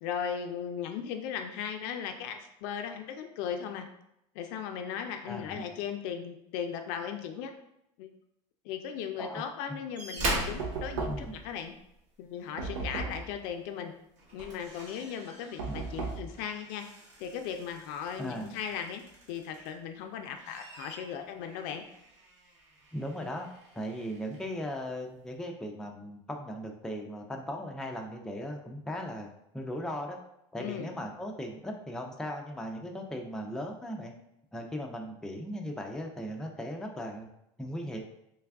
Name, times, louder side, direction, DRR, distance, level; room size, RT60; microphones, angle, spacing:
voice 1, 0.0-3.9 4.4-7.5 8.0-8.1 8.6-11.7 12.2-13.9 14.3-16.9 17.2-21.8 30.6-30.9, left 8 dB, 70° left, 6 dB, 0.4 m, -37 dB
voice 2, 5.3-5.6 9.2-9.4 11.1-11.4 15.7-15.9 18.2-18.6 22.9-23.5 23.7-29.3 29.5-30.2 30.5-34.1 34.5-37.3 37.6-38.0, equal, 5° left, 1 dB, 0.5 m, -38 dB
sound 1, 9.9-12.0 13.5-13.7 14.1-19.9 20.3-24.5 25.3-25.4, right 2 dB, 55° right, 1.1 m, -41 dB
Knock, 10.6-11.5 12.6-13.3 15.6-16.3, right 4 dB, 85° right, 0.8 m, -35 dB
3.2 x 2.3 x 3.4 m, 0.80 s
supercardioid pair, 115°, 15 cm